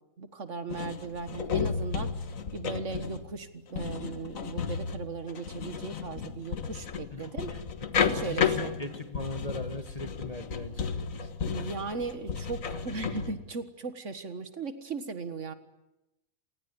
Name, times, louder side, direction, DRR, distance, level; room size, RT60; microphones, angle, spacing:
voice 1, 0.2-2.3 2.5-7.5 8.0-8.7 11.4-15.5, right 4 dB, 60° right, 11 dB, 1.9 m, -37 dB
sound 1, 0.7-13.3, left 6 dB, 70° left, 1.8 m, -33 dB
voice 2, 7.1-7.6 8.1-11.3, left 2 dB, 25° left, 9 dB, 1.7 m, -40 dB
27.5 x 19.0 x 9.7 m, 0.94 s
omnidirectional pair, 1.5 m